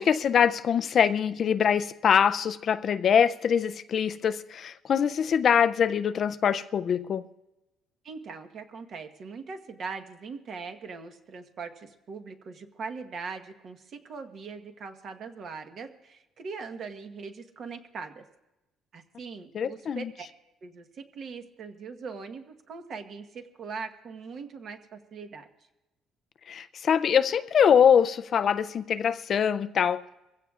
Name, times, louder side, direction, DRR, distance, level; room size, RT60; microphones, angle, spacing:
voice 1, 0.0-7.2 19.5-20.1 26.5-30.0, left 8 dB, 35° left, 0.4 m, -23 dB
voice 2, 8.0-18.2 18.9-20.3 20.6-25.5, right 5 dB, 40° right, 1.2 m, -41 dB
23.5 x 16.0 x 2.4 m
cardioid pair, 170°, 0 cm